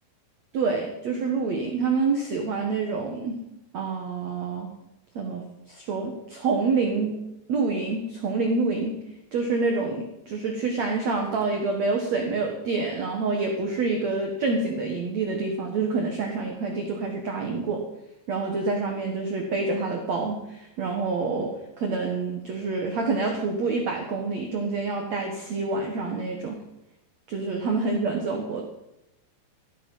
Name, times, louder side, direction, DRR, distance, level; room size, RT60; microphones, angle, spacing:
voice 1, 0.5-3.4 3.7-4.7 5.1-7.2 7.5-9.0 9.3-17.8 18.3-26.6 27.3-28.6, right 4 dB, 75° right, 2 dB, 1.6 m, -27 dB
15.0 x 11.5 x 5.4 m, 0.87 s
omnidirectional pair, 5.4 m